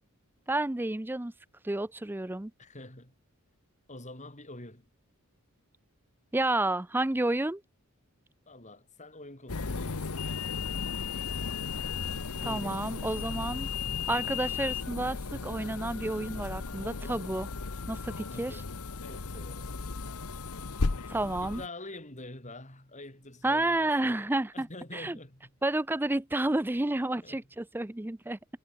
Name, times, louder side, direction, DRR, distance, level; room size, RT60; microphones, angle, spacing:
voice 1, 0.5-1.3 1.6-2.5 6.3-7.6 12.4-13.7 14.1-17.5 17.9-18.6 21.1-21.6 23.4-24.7 24.9-25.2 25.6-28.4, right 2 dB, 10° right, 0.5 m, -30 dB
voice 2, 2.6-3.1 3.9-4.9 8.5-10.3 12.4-13.3 18.3-18.7 19.0-19.8 21.4-25.5 27.2-27.4, left 2 dB, 35° left, 7.2 m, -46 dB
sound 1, 9.5-21.7, left 4 dB, 80° left, 1.1 m, -35 dB
head